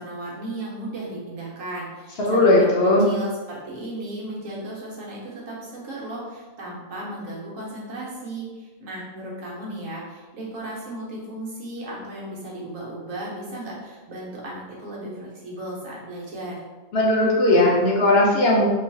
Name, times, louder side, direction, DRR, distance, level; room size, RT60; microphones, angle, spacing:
voice 1, 0.0-16.6, right 1 dB, 75° right, -5 dB, 1.3 m, -35 dB
voice 2, 2.2-3.1 16.9-18.6, left 2 dB, 60° left, -4 dB, 0.7 m, -17 dB
3.0 x 2.4 x 4.0 m, 1.3 s
omnidirectional pair, 1.4 m